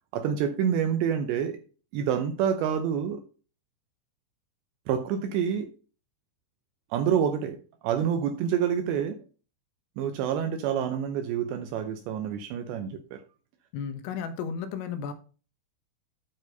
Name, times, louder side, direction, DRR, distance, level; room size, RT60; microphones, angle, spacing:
voice 1, 0.1-1.6 1.9-3.2 4.9-5.7 6.9-9.2 10.0-13.2, right 8 dB, 80° right, 2.6 m, -27 dB
voice 2, 13.7-15.1, left 6 dB, 85° left, 3.6 m, -33 dB
9.6 x 4.6 x 5.2 m
omnidirectional pair, 5.8 m